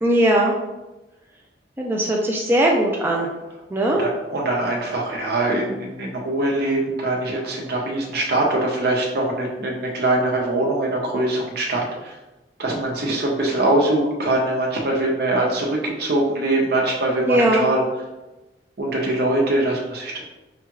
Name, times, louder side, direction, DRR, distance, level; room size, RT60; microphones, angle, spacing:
voice 1, 0.0-0.6 1.8-3.3 3.7-4.0 17.3-17.7, right 1 dB, 10° right, -2 dB, 0.4 m, -19 dB
voice 2, 4.0-12.1 12.6-17.8 18.8-20.2, right 2 dB, 65° right, -1 dB, 0.9 m, -22 dB
4.9 x 2.3 x 3.0 m, 1.0 s
head